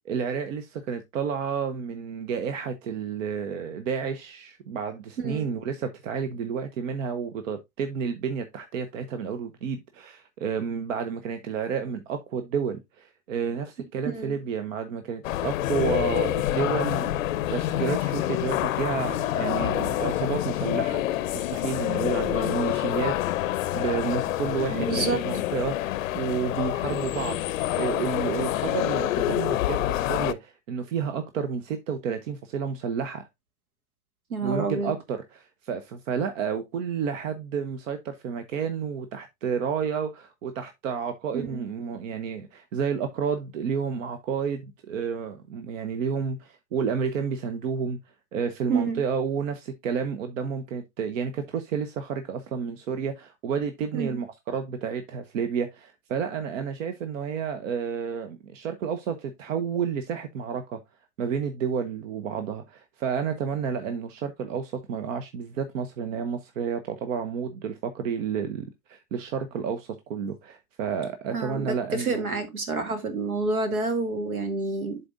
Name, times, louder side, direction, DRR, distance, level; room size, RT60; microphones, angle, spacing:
voice 1, 0.1-21.0 21.3-27.4 27.8-33.3 34.4-48.0 48.3-60.8 61.2-72.3, right 6 dB, 65° right, 0.9 m, -31 dB
sound 1, 15.2-30.3, left 14 dB, 65° left, 0.6 m, -27 dB
voice 2, 24.7-25.2 34.3-34.9 41.3-41.7 48.7-49.0 54.0-54.2 71.3-75.0, right 3 dB, 85° right, 1.7 m, -28 dB
11.0 x 4.0 x 2.5 m
figure-of-eight pair, 90°, 42 cm